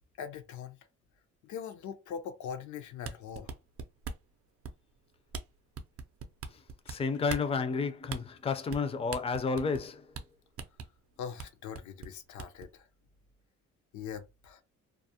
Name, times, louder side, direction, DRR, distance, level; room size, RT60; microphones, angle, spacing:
voice 1, 0.2-0.8 1.4-3.6 6.9-7.0 11.2-12.9 13.9-14.6, left 7 dB, 75° left, 0.6 m, -42 dB
sound 1, 2.9-4.3 4.6-5.0 5.3-5.4 5.7-6.9 7.3-7.5 8.1-8.2 8.7-8.8 9.1-9.9 10.1-10.2 10.6-10.9 11.4-11.5 11.7-12.7, right 5 dB, 50° right, 0.5 m, -40 dB
voice 2, 6.9-10.0, left 5 dB, 20° left, 0.4 m, -31 dB
2.4 x 2.0 x 2.7 m
cardioid pair, 90°, 30 cm